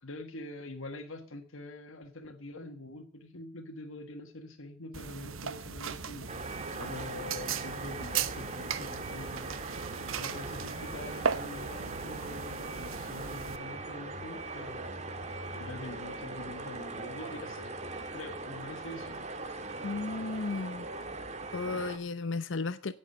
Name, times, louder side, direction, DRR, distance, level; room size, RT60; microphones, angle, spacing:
voice 1, 0.0-6.3 6.8-9.6 10.0-14.9 15.5-17.7 18.1-19.2, left 2 dB, 85° left, 6 dB, 1.6 m, -45 dB
sound 1, 4.9-13.6, right 6 dB, 90° right, 1.0 m, -37 dB
sound 2, 6.3-22.0, right 3 dB, 35° right, 1.8 m, -40 dB
voice 2, 19.8-20.9 21.5-22.9, left 3 dB, 65° left, 13 dB, 0.7 m, -34 dB
17.0 x 7.3 x 6.6 m, 0.42 s
head